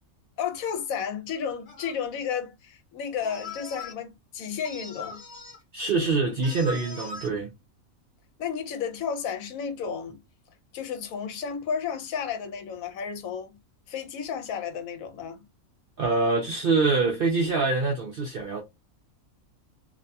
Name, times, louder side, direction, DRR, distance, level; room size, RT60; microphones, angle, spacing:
voice 1, 0.4-5.2 8.4-10.2 10.7-13.6 13.9-15.4, left 7 dB, 75° left, 1.0 m, -32 dB
sound 1, 1.6-2.0 3.2-3.9 4.6-5.6 6.4-7.3, left 3 dB, 35° left, 0.8 m, -40 dB
voice 2, 5.7-7.5 16.0-18.6, right 3 dB, 65° right, 0.5 m, -25 dB
2.6 x 2.2 x 2.6 m
omnidirectional pair, 1.5 m